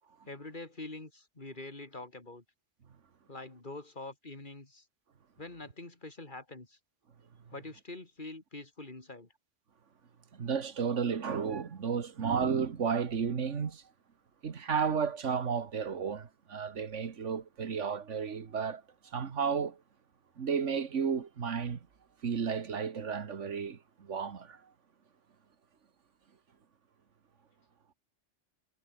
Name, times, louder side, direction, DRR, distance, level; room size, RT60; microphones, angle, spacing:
voice 1, 0.3-2.4 3.3-4.9 5.4-6.8 7.5-9.3, left 2 dB, 40° left, 3.4 m, -45 dB
voice 2, 10.3-13.8 14.4-19.8 20.4-21.8 22.2-24.6, right 6 dB, 80° right, 1.8 m, -33 dB
omnidirectional pair, 1.2 m